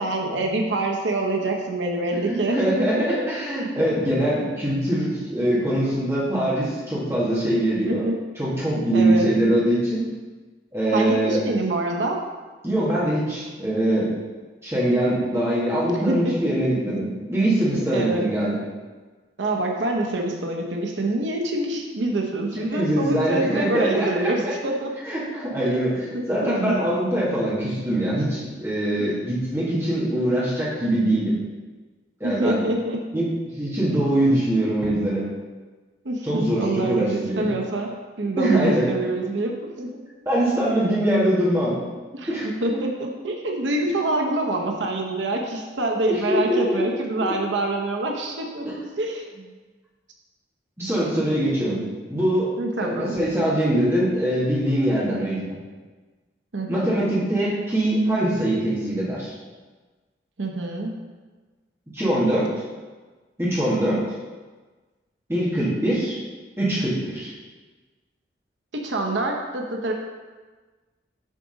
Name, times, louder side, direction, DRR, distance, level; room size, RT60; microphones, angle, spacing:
voice 1, 0.0-3.2 7.8-8.2 8.7-9.3 10.9-12.2 16.1-16.4 17.7-18.3 19.4-24.9 25.6-26.7 29.0-29.1 32.2-33.0 36.0-37.9 38.2-40.0 42.1-42.3 42.6-48.7 49.0-49.2 52.6-53.2 56.5-57.0 60.4-60.9 68.7-69.9, right 2 dB, 90° right, 1 dB, 0.8 m, -26 dB
voice 2, 2.2-8.0 8.4-10.0 10.7-11.4 12.6-14.1 14.6-18.6 22.5-24.5 25.0-26.0 26.3-31.3 32.2-32.6 33.1-33.3 33.6-35.3 36.2-37.5 38.4-38.9 40.2-41.8 42.3-42.8 46.1-46.8 47.2-47.3 48.6-48.7 50.8-51.8 52.1-55.6 56.7-59.3 61.9-62.5 63.4-64.0 65.3-66.2 66.6-67.3, right 1 dB, 15° right, -8 dB, 1.8 m, -23 dB
7.4 x 3.9 x 5.1 m, 1.3 s
head